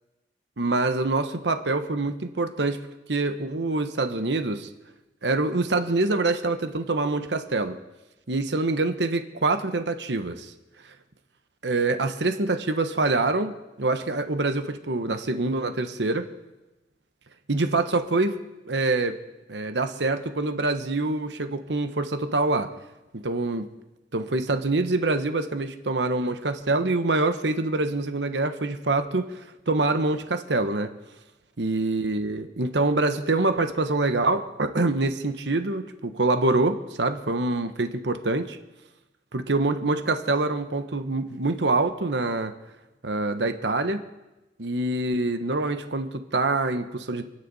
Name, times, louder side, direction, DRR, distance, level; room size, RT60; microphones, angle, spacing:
voice 1, 0.6-2.8 3.1-4.7 5.2-7.8 8.3-10.5 11.6-16.2 17.5-18.4 18.7-19.2 19.5-22.7 23.1-23.7 24.1-29.3 29.7-30.9 31.6-38.6 39.3-42.5 43.0-44.0 44.6-47.2, right 2 dB, 70° right, 8 dB, 1.1 m, -25 dB
28.0 x 9.9 x 4.2 m, 1.0 s
head